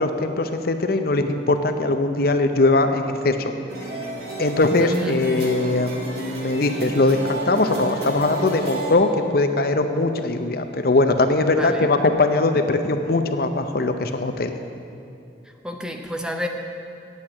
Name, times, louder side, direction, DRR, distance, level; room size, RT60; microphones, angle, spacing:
voice 1, 0.0-3.5 4.4-14.6, left 2 dB, 55° left, 7 dB, 0.7 m, -21 dB
sound 1, 3.7-8.9, right 1 dB, 60° right, 2.0 m, -31 dB
voice 2, 4.8-5.1 11.6-11.9 15.6-16.5, left 1 dB, 5° right, 3 dB, 0.7 m, -29 dB
8.5 x 8.2 x 8.6 m, 2.6 s
head